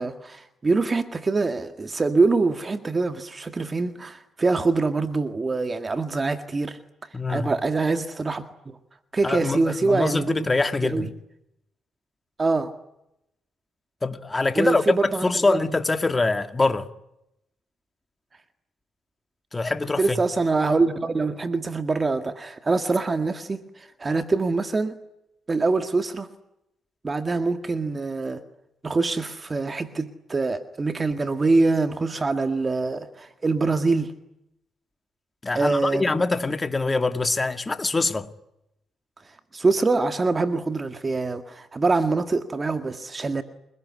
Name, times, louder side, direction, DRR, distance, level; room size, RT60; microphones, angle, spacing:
voice 1, 0.0-6.8 7.3-8.8 9.1-10.5 10.8-11.1 12.4-12.7 14.6-15.6 20.0-25.0 25.5-26.3 27.0-28.4 28.8-34.1 35.6-36.1 39.5-43.4, right 3 dB, 30° right, 1.9 m, -24 dB
voice 2, 7.1-7.5 9.2-11.1 14.0-16.9 19.5-20.2 35.4-38.3, left 3 dB, 20° left, 2.1 m, -24 dB
28.0 x 20.5 x 9.8 m
cardioid pair, 90°, 0 cm